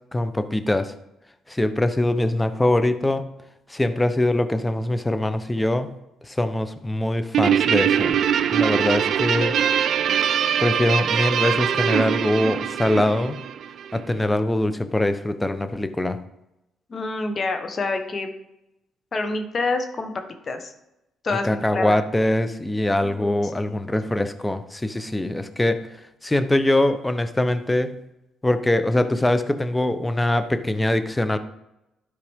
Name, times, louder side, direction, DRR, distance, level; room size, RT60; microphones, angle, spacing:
voice 1, 0.1-0.9 1.5-3.3 3.7-5.9 6.3-8.2 8.5-9.6 10.6-13.4 13.9-16.2 21.4-25.8 26.2-27.9 28.4-31.4, left 1 dB, 15° left, 10 dB, 0.8 m, -23 dB
Guitar, 7.3-14.0, right 9 dB, 65° right, 0.3 m, -22 dB
voice 2, 16.9-18.3 19.1-20.7 21.2-22.0 23.0-23.3 23.7-23.8, left 3 dB, 45° left, 6 dB, 1.3 m, -27 dB
12.0 x 4.8 x 3.6 m, 0.90 s
supercardioid pair, 65°, 0 cm